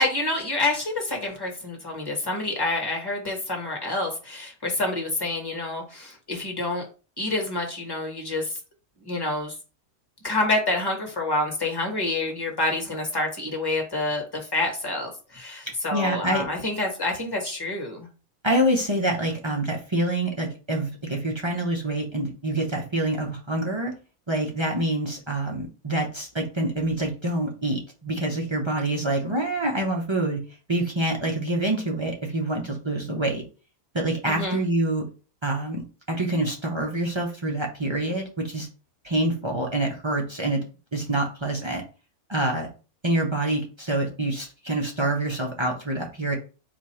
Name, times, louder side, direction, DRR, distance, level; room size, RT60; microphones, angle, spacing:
voice 1, 0.0-6.8 7.2-8.5 9.1-9.5 10.2-18.1 34.3-34.6, left 2 dB, 20° left, 1 dB, 1.1 m, -27 dB
voice 2, 15.7-16.5 18.4-23.9 24.3-30.4 30.7-33.4 33.9-35.0 35.4-35.8 36.1-38.7 39.0-40.6 40.9-41.8 42.3-42.7 43.0-46.4, right 1 dB, 40° right, 0 dB, 0.4 m, -26 dB
4.4 x 2.5 x 4.2 m, 0.35 s
omnidirectional pair, 1.6 m